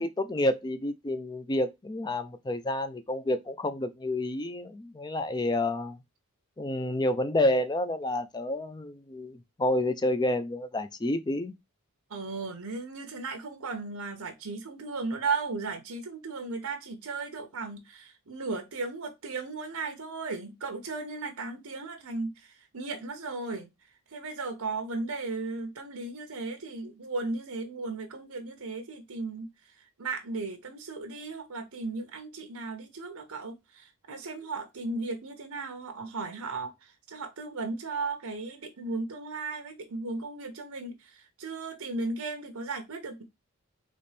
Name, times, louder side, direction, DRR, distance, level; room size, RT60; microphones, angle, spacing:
voice 1, 0.0-6.0 6.6-11.5, left 1 dB, 20° left, 0.4 m, -29 dB
voice 2, 12.1-23.7 24.1-29.5 30.0-43.2, right 3 dB, 75° right, 0.9 m, -36 dB
4.2 x 3.1 x 3.3 m
head